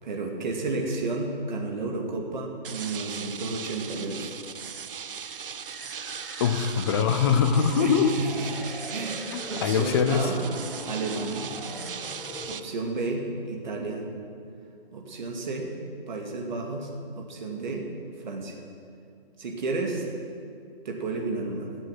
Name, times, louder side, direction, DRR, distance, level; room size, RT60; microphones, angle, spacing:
voice 1, 0.0-4.4 7.8-8.5 8.9-10.4 10.9-11.6 12.5-14.1 14.9-15.7 16.1-16.9 17.2-17.9 18.2-18.6 19.4-20.0 20.8-21.7, right 3 dB, 50° right, 1 dB, 2.4 m, -32 dB
sound 1, 2.6-12.6, right 7 dB, 70° right, 0.7 m, -38 dB
sound 2, 5.1-12.6, equal, ahead, 1.1 m, -41 dB
voice 2, 6.4-8.2 9.3-10.3, left 7 dB, 25° left, 8 dB, 0.7 m, -23 dB
14.0 x 8.1 x 7.7 m, 2.5 s
figure-of-eight pair, 145°, 29 cm